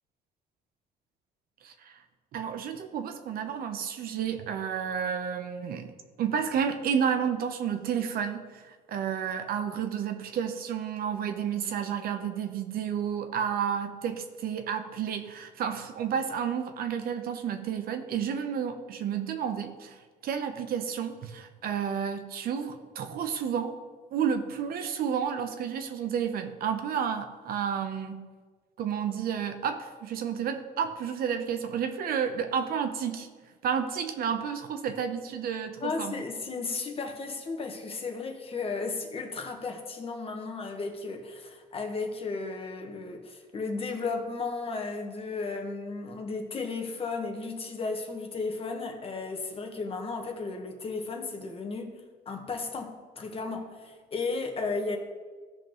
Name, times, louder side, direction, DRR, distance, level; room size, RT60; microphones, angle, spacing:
voice 1, 1.6-2.0 2.3-5.9 6.2-20.0 20.2-23.8 24.1-28.3 28.8-33.3 33.6-36.1, right 7 dB, 60° right, 7 dB, 0.8 m, -31 dB
voice 2, 35.8-52.0 52.3-55.0, left 4 dB, 35° left, 3 dB, 1.3 m, -34 dB
15.0 x 5.2 x 3.0 m, 1.4 s
cardioid pair, 110°, 17 cm